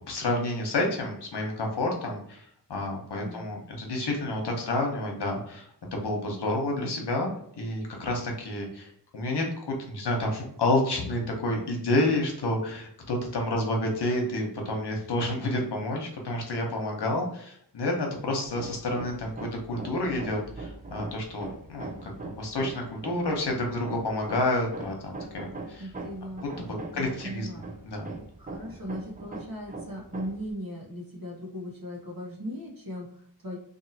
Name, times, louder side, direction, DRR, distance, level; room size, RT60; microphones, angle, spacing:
voice 1, 0.1-7.3 7.6-25.8 26.6-27.5 27.8-28.1, left 1 dB, 70° left, 1 dB, 1.0 m, -29 dB
Hammer, 18.4-30.5, right 3 dB, 20° right, 0.5 m, -42 dB
voice 2, 25.8-27.7 28.4-33.6, equal, 50° right, -3 dB, 1.0 m, -38 dB
2.7 x 2.6 x 2.8 m, 0.66 s
cardioid pair, 60°, 43 cm